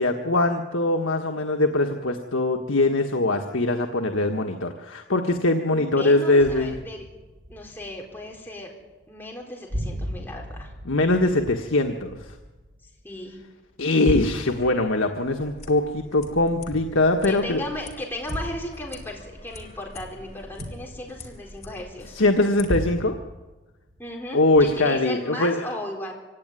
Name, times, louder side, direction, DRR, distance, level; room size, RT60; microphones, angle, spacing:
voice 1, 0.0-6.7 10.8-12.3 13.8-17.6 22.1-23.1 24.3-25.7, left 2 dB, 85° left, 3 dB, 1.6 m, -22 dB
voice 2, 5.7-7.1 7.5-8.7 9.1-10.7 13.0-13.4 17.3-22.2 24.0-26.1, left 1 dB, 10° left, -1 dB, 4.1 m, -35 dB
sound 1, 6.4-8.6 8.9-9.4 9.7-13.4 13.8-17.4 18.3-21.8 22.7-24.2 24.5-25.1, equal, 75° right, 4.1 m, -36 dB
sound 2, 15.2-22.7, left 2 dB, 35° left, 3.1 m, -44 dB
25.0 x 17.0 x 9.8 m, 1.2 s
head